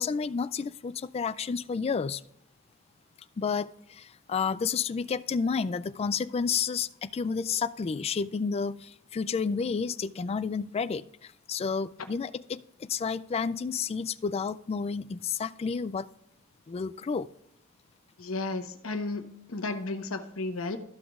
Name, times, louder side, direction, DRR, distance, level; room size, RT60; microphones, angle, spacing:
voice 1, 0.0-2.2 3.4-16.1 16.7-17.3, left 5 dB, 30° left, 15 dB, 0.3 m, -31 dB
voice 2, 18.2-19.2 19.5-20.8, left 3 dB, 75° left, 5 dB, 1.1 m, -33 dB
14.0 x 5.9 x 2.4 m, 0.73 s
head